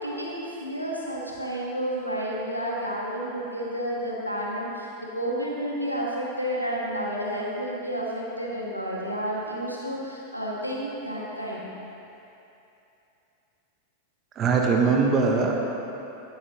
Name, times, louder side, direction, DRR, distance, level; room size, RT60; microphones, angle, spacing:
voice 1, 0.0-11.7, equal, 90° right, -4 dB, 1.9 m, -31 dB
voice 2, 14.4-15.7, right 4 dB, 30° right, 1 dB, 1.1 m, -21 dB
15.0 x 10.5 x 3.0 m, 2.8 s
figure-of-eight pair, 90°, 0 cm